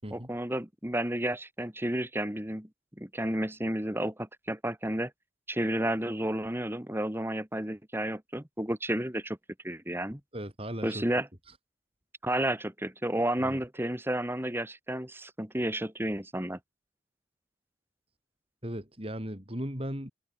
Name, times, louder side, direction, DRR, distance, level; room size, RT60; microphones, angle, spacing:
voice 1, 0.1-2.7 3.0-5.1 5.5-9.4 9.6-10.2 10.8-11.3 12.2-16.6, right 1 dB, 15° right, 2.4 m, -31 dB
voice 2, 10.3-11.0 13.4-13.6 18.6-20.1, equal, 30° right, 6.1 m, -37 dB
head